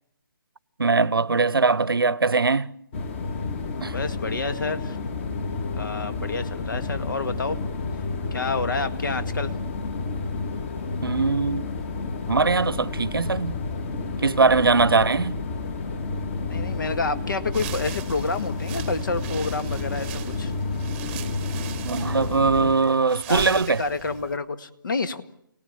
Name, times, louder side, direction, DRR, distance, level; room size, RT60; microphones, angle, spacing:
voice 1, 0.8-2.7 3.8-4.0 11.0-11.6 12.3-13.6 14.2-15.4 21.8-23.8, right 4 dB, 85° right, 0.9 m, -21 dB
sound 1, 2.9-22.7, left 3 dB, 35° left, 2.3 m, -30 dB
voice 2, 3.9-5.0 5.7-7.6 8.3-9.5 14.8-15.2 16.5-20.5 23.3-25.2, left 3 dB, 65° left, 2.0 m, -29 dB
sound 2, 17.5-24.4, right 12 dB, 25° right, 1.0 m, -40 dB
27.5 x 18.5 x 8.5 m
figure-of-eight pair, 145°, 12 cm